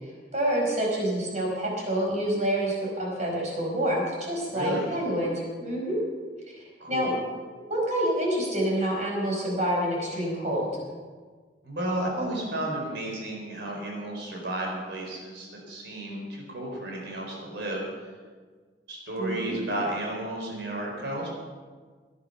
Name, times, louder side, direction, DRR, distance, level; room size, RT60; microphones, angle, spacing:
voice 1, 0.3-6.0 6.9-7.1 7.7-10.7 19.2-19.6, right 1 dB, 40° right, -2 dB, 5.0 m, -27 dB
voice 2, 4.5-4.9 6.8-7.2 11.6-17.8 18.9-21.3, right 1 dB, 65° right, -1 dB, 4.4 m, -32 dB
18.5 x 11.0 x 5.6 m, 1.5 s
head